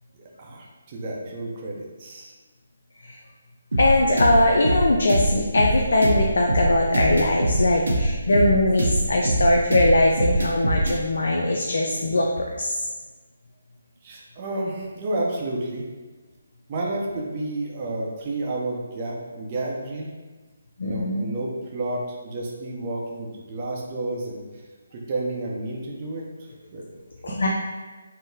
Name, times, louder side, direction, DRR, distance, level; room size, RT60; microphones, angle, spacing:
voice 1, 0.1-2.3 14.0-15.8 16.7-20.1 20.8-24.4 24.9-26.8 27.3-27.4, right 2 dB, 35° right, -2 dB, 0.6 m, -31 dB
sound 1, 3.7-11.0, right 1 dB, 75° right, 0.6 m, -23 dB
voice 2, 3.8-12.9 20.8-21.3 27.2-27.5, left 1 dB, 65° left, -1 dB, 0.3 m, -21 dB
3.7 x 2.1 x 2.7 m, 1.3 s
figure-of-eight pair, 150°, 0 cm